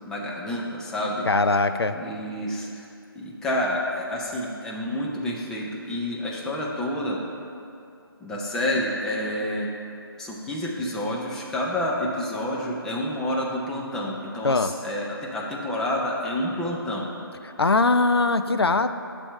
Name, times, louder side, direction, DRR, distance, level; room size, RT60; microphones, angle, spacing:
voice 1, 0.1-1.3 1.9-2.9 3.1-7.2 8.2-9.7 10.2-17.1, left 1 dB, 5° left, -3 dB, 0.4 m, -29 dB
voice 2, 1.3-2.0 14.4-14.7 17.6-18.9, left 3 dB, 85° left, 10 dB, 0.4 m, -21 dB
9.9 x 3.4 x 6.4 m, 2.6 s
figure-of-eight pair, 145°, 13 cm